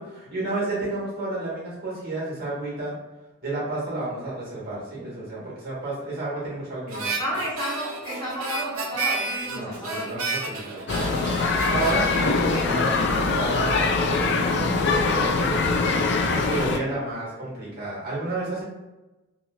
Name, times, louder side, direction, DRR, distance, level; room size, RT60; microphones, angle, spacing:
voice 1, 0.0-2.9 3.4-7.1 9.5-11.1 11.7-15.8 16.1-18.6, right 2 dB, 45° right, -6 dB, 1.3 m, -31 dB
Harmonica, 6.9-13.4, right 3 dB, 80° right, 0.6 m, -32 dB
voice 2, 7.2-10.1 11.6-12.6, equal, 20° left, -9 dB, 1.1 m, -32 dB
sound 1, 10.9-16.8, left 4 dB, 55° left, 0.3 m, -23 dB
3.0 x 2.7 x 2.6 m, 1.1 s
head